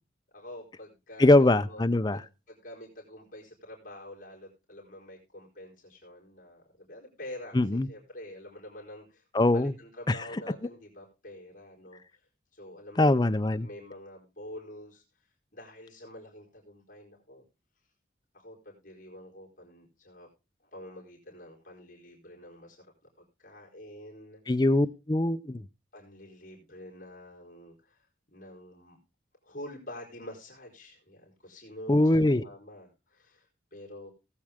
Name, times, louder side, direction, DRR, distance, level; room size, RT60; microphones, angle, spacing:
voice 1, 0.3-9.2 9.5-12.0 12.5-13.2 13.6-15.0 15.5-17.4 18.3-20.3 20.6-22.9 23.2-24.4 25.9-28.0 28.3-29.0 29.4-34.1, left 1 dB, 40° left, 4.3 m, -47 dB
voice 2, 1.2-2.2 7.5-7.9 9.3-9.7 10.1-10.2 13.0-13.7 24.5-25.7 31.9-32.4, left 2 dB, 20° left, 0.5 m, -22 dB
18.5 x 7.5 x 3.5 m
head